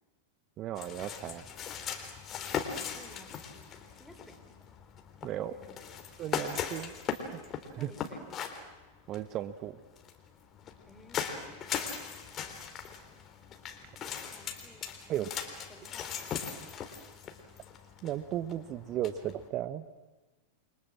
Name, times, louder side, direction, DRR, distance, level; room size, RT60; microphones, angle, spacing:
voice 1, 0.6-1.4 5.2-5.5 6.2-6.9 7.7-7.9 9.1-9.8 15.1-15.3 18.0-19.8, right 12 dB, 35° right, 14 dB, 1.1 m, -35 dB
sound 1, 0.7-19.5, left 7 dB, 30° left, 3.8 m, -39 dB
voice 2, 2.7-3.7 4.0-4.5 5.4-5.9 7.8-8.6 10.9-11.7 12.9-13.1 14.3-16.2, left 1 dB, 5° left, 6 dB, 4.2 m, -55 dB
29.5 x 24.0 x 7.6 m, 1.2 s
figure-of-eight pair, 95°, 0 cm